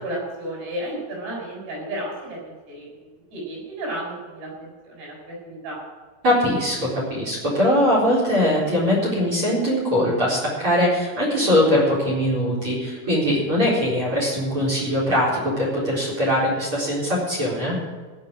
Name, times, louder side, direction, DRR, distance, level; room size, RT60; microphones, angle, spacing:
voice 1, 0.0-2.9 3.3-5.8, right 1 dB, 60° right, -2 dB, 8.3 m, -33 dB
voice 2, 6.2-17.8, equal, 25° right, -4 dB, 4.3 m, -21 dB
16.5 x 6.6 x 8.8 m, 1.4 s
omnidirectional pair, 5.9 m